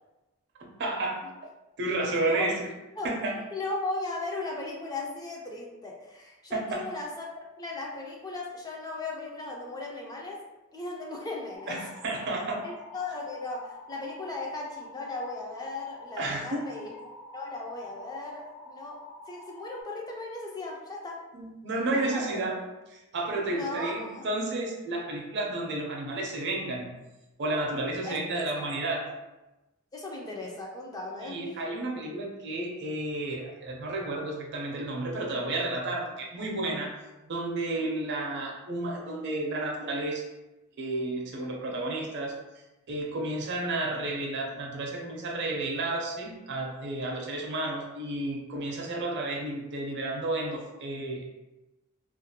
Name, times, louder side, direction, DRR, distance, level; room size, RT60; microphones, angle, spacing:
voice 1, 0.6-1.2 1.8-2.7 3.0-3.4 6.5-6.9 11.7-12.6 16.2-16.6 21.3-22.5 22.9-26.9 27.4-29.0 31.2-36.9 37.2-40.2 40.8-42.3 42.9-51.2, right 2 dB, 55° right, 0 dB, 0.5 m, -31 dB
voice 2, 2.2-2.6 3.0-3.1 3.5-7.3 7.6-10.4 10.7-11.8 12.6-19.0 19.3-21.2 21.9-22.5 23.5-24.3 28.0-28.8 29.9-31.5, left 2 dB, 20° left, -1 dB, 0.3 m, -37 dB
sound 1, 11.5-19.8, left 3 dB, 85° left, 0.4 m, -48 dB
2.4 x 2.1 x 2.7 m, 1.0 s
head